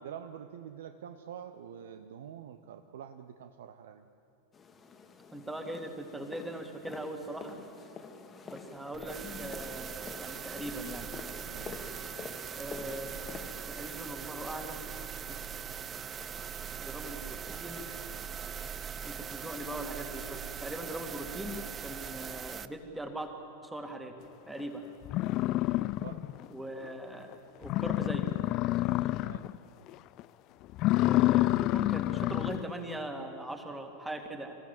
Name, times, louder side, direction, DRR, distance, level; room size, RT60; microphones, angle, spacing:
voice 1, 0.0-4.1 11.5-11.9 25.8-26.3 29.2-29.6, right 9 dB, 60° right, 9 dB, 0.8 m, -46 dB
sound 1, 4.5-13.7, left 4 dB, 20° left, 1.7 m, -47 dB
voice 2, 5.3-7.6 8.4-11.2 12.5-13.1 13.7-14.9 16.2-16.5 16.8-17.9 19.0-23.3 23.6-24.2 24.5-24.9 26.5-27.3 27.6-28.3 31.0-34.6, right 1 dB, 5° right, 5 dB, 2.2 m, -40 dB
sound 2, 8.9-22.7, right 7 dB, 25° right, 0.6 m, -41 dB
sound 3, 24.6-24.7 25.1-26.5 26.8-26.9 27.3-27.4 27.6-29.6 29.9-30.2 30.7-32.7, left 17 dB, 40° left, 0.4 m, -28 dB
26.5 x 15.5 x 7.6 m, 2.7 s
figure-of-eight pair, 90°, 0 cm